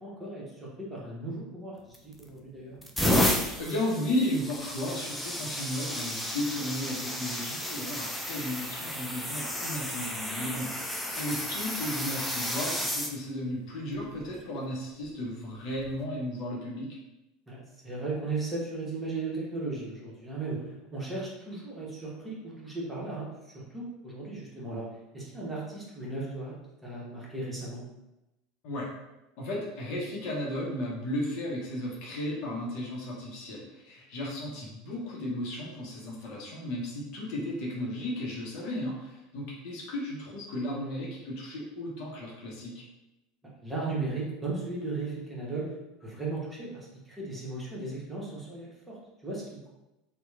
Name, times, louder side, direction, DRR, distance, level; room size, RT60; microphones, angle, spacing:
voice 1, 0.0-1.8 2.0-2.8 17.5-20.6 20.9-24.9 25.1-26.5 26.8-27.8 43.6-45.7 46.0-46.8 47.1-49.0 49.2-49.4, right 3 dB, 15° right, -5 dB, 1.0 m, -36 dB
sound 1, 1.9-2.3 2.8-13.1 14.0-14.2 15.8-15.9, left 1 dB, 5° left, 0.4 m, -32 dB
voice 2, 3.6-10.8 11.1-16.9 28.6-28.9 29.4-42.8, left 1 dB, 55° left, -3 dB, 0.7 m, -34 dB
2.8 x 2.2 x 2.4 m, 0.96 s
hypercardioid pair, 80°, 0 cm